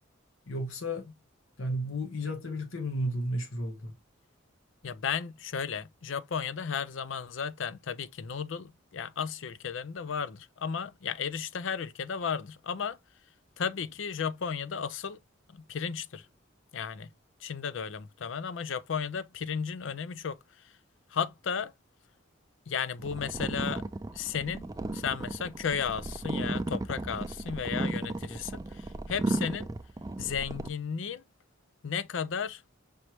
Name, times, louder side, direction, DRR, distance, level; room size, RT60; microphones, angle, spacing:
voice 1, 0.5-1.1 1.6-3.9, equal, 85° left, 1.2 m, -33 dB
voice 2, 4.8-13.0 13.6-15.2 15.5-16.3 16.7-17.1 17.4-20.4 21.1-21.7 22.7-23.8 24.1-29.7 30.2-31.2 31.8-32.6, left 6 dB, 70° left, 0.5 m, -34 dB
sound 1, 23.0-30.7, right 2 dB, 15° right, 0.3 m, -35 dB
5.3 x 3.1 x 3.0 m
head